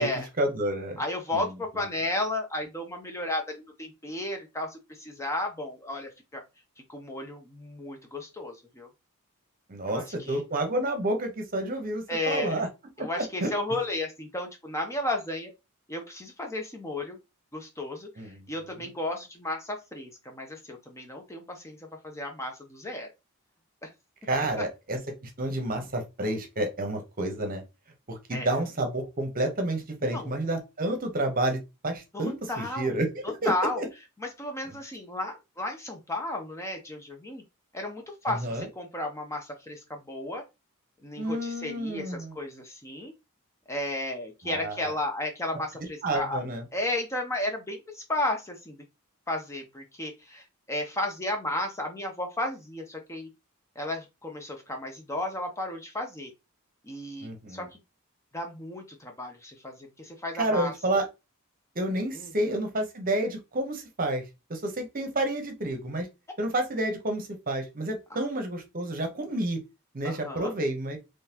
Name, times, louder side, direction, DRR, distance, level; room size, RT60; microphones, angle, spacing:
voice 1, 0.4-1.0 1.3-1.4 9.7-12.7 13.0-13.5 18.2-18.5 24.3-27.6 28.1-33.5 33.8-33.9 38.3-38.7 41.2-42.3 44.4-44.9 46.0-46.6 57.2-57.7 60.3-61.1 61.7-64.2 64.5-66.1 66.4-69.6 69.9-71.0, right 1 dB, 40° right, 5 dB, 0.9 m, -30 dB
voice 2, 1.0-6.4 6.9-8.9 9.9-10.4 12.1-12.7 13.0-15.5 15.9-17.2 17.5-23.1 23.8-23.9 24.6-24.7 28.3-28.5 30.0-30.4 32.1-33.0 33.2-33.8 34.2-37.4 37.7-40.4 41.0-43.1 43.7-46.4 46.7-48.8 49.3-53.3 53.8-56.3 56.8-57.7 58.3-60.7 62.1-62.3 68.1-68.2 70.0-70.5, left 1 dB, 15° left, 3 dB, 0.6 m, -33 dB
3.9 x 3.1 x 2.8 m, 0.25 s
head